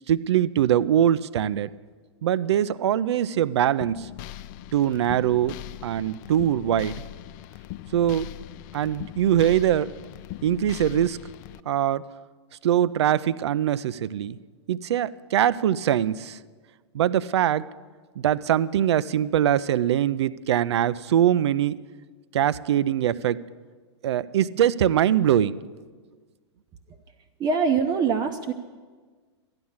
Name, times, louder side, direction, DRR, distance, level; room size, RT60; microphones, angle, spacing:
voice 1, 0.1-1.7 2.2-4.1 4.7-5.6 5.8-7.0 7.9-8.3 8.7-9.9 10.4-11.2 11.7-12.0 12.6-14.4 14.7-16.4 16.9-17.6 18.2-21.8 22.3-23.4 24.0-25.6, right 10 dB, 65° right, 18 dB, 0.4 m, -22 dB
sound 1, 3.8-11.6, left 14 dB, 40° left, 0.4 m, -40 dB
voice 2, 27.4-28.5, right 5 dB, 25° right, 5 dB, 0.7 m, -23 dB
13.0 x 9.7 x 7.2 m, 1.5 s
figure-of-eight pair, 105°, 15 cm